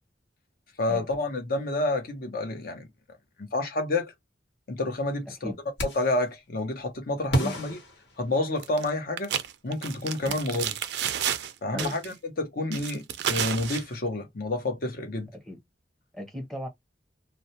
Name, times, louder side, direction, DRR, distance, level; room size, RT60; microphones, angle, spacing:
voice 1, 0.8-2.9 3.4-4.1 4.7-5.5 5.8-7.8 8.2-9.3 9.6-10.7 11.6-15.3, left 2 dB, 55° left, 0.8 m, -29 dB
sound 1, 5.8-6.3 7.3-8.8, right 1 dB, 80° left, 1.2 m, -31 dB
sound 2, 8.6-8.9 9.2-11.5 11.8-12.1 12.7-13.8, right 9 dB, 65° right, 0.4 m, -30 dB
voice 2, 16.1-16.7, left 1 dB, ahead, 0.8 m, -36 dB
2.4 x 2.1 x 2.8 m
head